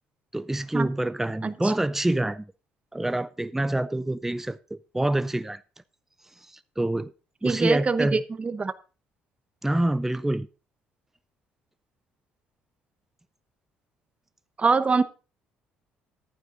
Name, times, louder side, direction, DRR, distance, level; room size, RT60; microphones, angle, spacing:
voice 1, 0.3-2.5 2.9-5.6 6.5-7.1 7.4-8.2 9.6-10.5, right 1 dB, 5° right, 0.5 m, -26 dB
voice 2, 7.4-8.7 14.6-15.0, right 4 dB, 30° right, 0.9 m, -24 dB
11.5 x 9.3 x 3.8 m
supercardioid pair, 65°, 4 cm